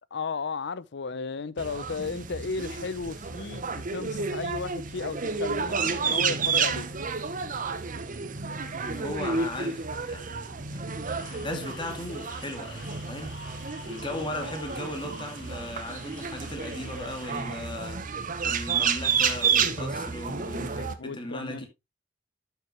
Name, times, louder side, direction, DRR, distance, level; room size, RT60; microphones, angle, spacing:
voice 1, 0.1-6.9 21.0-21.6, left 4 dB, 65° left, 0.6 m, -34 dB
sound 1, 1.6-20.9, right 5 dB, 45° right, 1.0 m, -31 dB
voice 2, 8.8-21.7, left 1 dB, 25° left, 2.3 m, -37 dB
sound 2, 11.0-18.0, left 3 dB, 85° left, 3.7 m, -50 dB
11.0 x 6.8 x 3.0 m
head